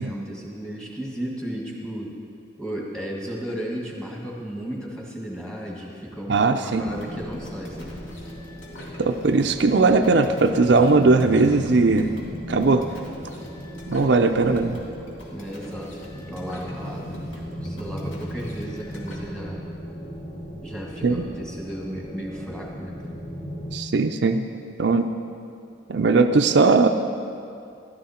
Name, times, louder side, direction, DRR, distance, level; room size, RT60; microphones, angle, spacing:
voice 1, 0.0-2.1 2.6-8.0 14.4-14.6 15.3-17.2 17.5-19.6 20.6-23.0, equal, 5° left, -2 dB, 1.7 m, -34 dB
voice 2, 6.3-6.8 9.0-12.1 12.5-12.8 13.9-14.8 21.0-21.2 23.7-24.5 24.8-25.1 25.9-26.9, right 3 dB, 65° right, 6 dB, 0.5 m, -19 dB
sound 1, 6.8-19.2, left 1 dB, 90° left, 2.4 m, -45 dB
sound 2, 6.8-23.8, equal, 40° left, 1.4 m, -36 dB
15.0 x 12.0 x 4.3 m, 2.5 s
head